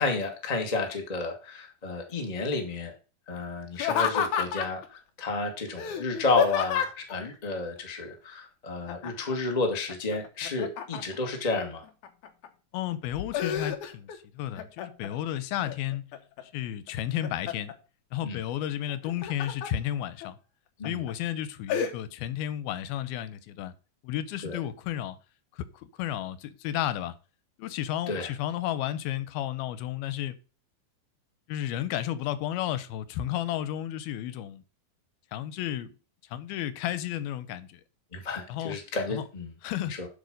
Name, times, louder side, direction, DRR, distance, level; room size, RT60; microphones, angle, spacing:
voice 1, 0.0-2.9 3.3-11.8 18.2-18.4 20.8-21.0 24.4-24.6 28.1-28.3 38.1-39.5 39.8-40.1, left 3 dB, 20° left, 0.9 m, -31 dB
Laughter, 3.7-4.9 5.8-7.1 8.9-9.3 9.7-11.3 11.8-12.5 12.9-14.2 14.6-15.1 15.6-16.4 16.9-17.7 18.9-19.7 20.2-20.3 20.8-21.1 21.7-21.9, left 8 dB, 70° left, 2.1 m, -30 dB
voice 2, 12.7-16.1 16.5-17.7 18.1-20.4 20.8-23.7 24.0-25.2 25.6-27.1 27.6-30.4 31.5-34.6 35.3-35.9 36.3-37.8 38.5-38.8 39.1-39.2 39.6-39.9, left 12 dB, 85° left, 2.6 m, -32 dB
11.5 x 4.7 x 5.3 m
omnidirectional pair, 4.3 m